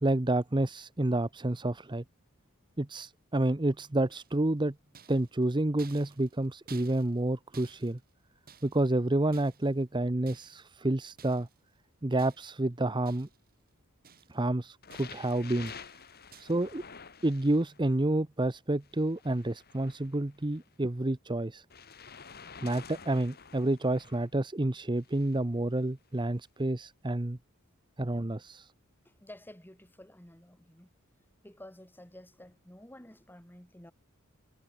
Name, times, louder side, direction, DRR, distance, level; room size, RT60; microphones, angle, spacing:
voice 1, 0.0-2.0 2.8-4.7 5.1-8.0 8.6-11.5 12.0-13.3 14.3-15.7 16.4-16.8 17.2-21.6 22.6-27.4 28.0-28.7, right 1 dB, 20° right, 0.8 m, -29 dB
sound 1, 4.1-4.5 4.9-9.0 9.3-9.8 10.3-10.7 11.2-11.6 12.2-12.7 13.0-13.5 13.8-14.5 14.9-15.3 15.7-16.0 16.3-16.7, right 7 dB, 45° right, 4.1 m, -55 dB
sound 2, 14.8-18.0 18.8-20.7 21.7-24.3 25.0-25.4 26.2-26.3, left 6 dB, 45° left, 2.5 m, -49 dB
voice 2, 29.0-30.9 31.4-33.9, left 1 dB, 10° left, 3.0 m, -51 dB
head